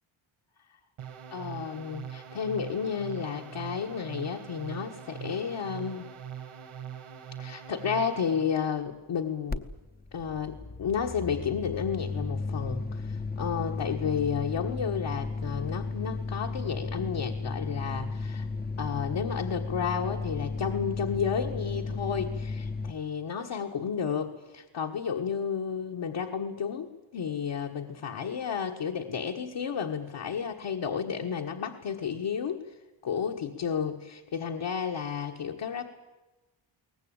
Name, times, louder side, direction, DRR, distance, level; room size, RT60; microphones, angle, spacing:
sound 1, 1.0-8.5, right 9 dB, 75° right, 2.4 m, -42 dB
voice 1, 1.3-6.1 7.4-9.7 10.1-18.5 18.8-32.7 33.0-35.9, left 7 dB, 60° left, 1 dB, 1.5 m, -32 dB
sound 2, 9.5-9.6 9.9-22.9, left 3 dB, 20° left, 0.8 m, -34 dB
22.5 x 18.5 x 8.8 m, 1.1 s
wide cardioid pair, 135°, 49 cm